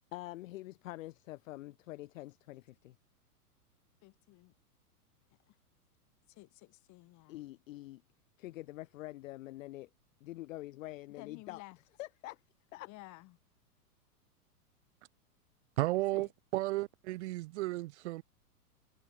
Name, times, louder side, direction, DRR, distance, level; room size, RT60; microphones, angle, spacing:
voice 1, 0.1-3.0 7.3-8.0 8.4-9.9 10.2-11.6 12.0-12.4 12.7-12.9, left 17 dB, 55° left, 0.9 m, -45 dB
voice 2, 4.0-4.5 5.5-5.6 6.3-7.4 11.2-11.8 12.8-13.4 16.1-16.3, left 21 dB, 40° left, 5.4 m, -53 dB
voice 3, 15.8-18.2, right 19 dB, 50° right, 0.6 m, -34 dB
hypercardioid pair, 110°, 46 cm